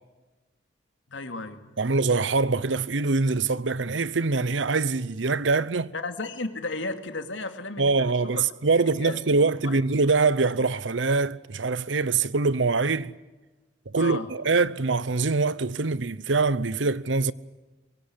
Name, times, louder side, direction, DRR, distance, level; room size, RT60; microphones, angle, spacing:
voice 1, 1.1-1.8 5.9-8.5 8.9-9.8 14.0-14.3, left 2 dB, 85° left, 2.6 m, -34 dB
voice 2, 1.8-5.9 7.8-13.1 13.9-17.3, right 4 dB, 80° right, 0.9 m, -24 dB
24.0 x 22.5 x 10.0 m
head